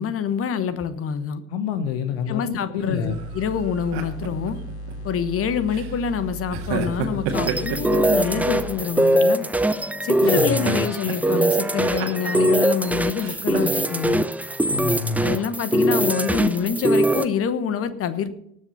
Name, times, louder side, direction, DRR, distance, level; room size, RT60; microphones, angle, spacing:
voice 1, 0.0-1.4 2.3-4.6 5.0-9.5 10.0-14.3 15.2-18.3, left 7 dB, 45° left, 13 dB, 1.2 m, -26 dB
voice 2, 1.5-3.2 10.1-10.8 14.7-15.3, left 6 dB, 70° left, 10 dB, 0.9 m, -27 dB
sound 1, 2.8-4.9 5.7-6.0 6.5-8.6 9.0-9.9 10.2-11.5 11.7-12.8 13.2-13.9, right 7 dB, 65° right, 1.9 m, -32 dB
sound 2, 3.0-8.8, right 1 dB, 85° left, 1.3 m, -36 dB
sound 3, 7.3-17.2, right 1 dB, 5° right, 0.7 m, -22 dB
18.5 x 6.5 x 5.6 m, 0.74 s
figure-of-eight pair, 50°, 32 cm